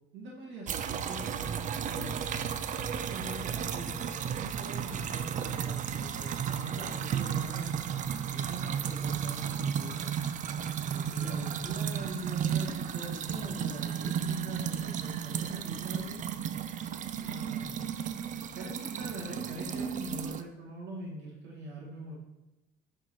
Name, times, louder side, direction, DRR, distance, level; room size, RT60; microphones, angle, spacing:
voice 1, 0.1-2.5 3.1-7.8 8.3-10.1 10.8-16.2 17.2-17.9 18.5-22.2, right 1 dB, 85° right, -4 dB, 2.0 m, -42 dB
sound 1, 0.7-20.4, right 8 dB, 45° right, 0.5 m, -34 dB
9.8 x 4.4 x 4.6 m, 0.98 s
cardioid pair, 130°, 18 cm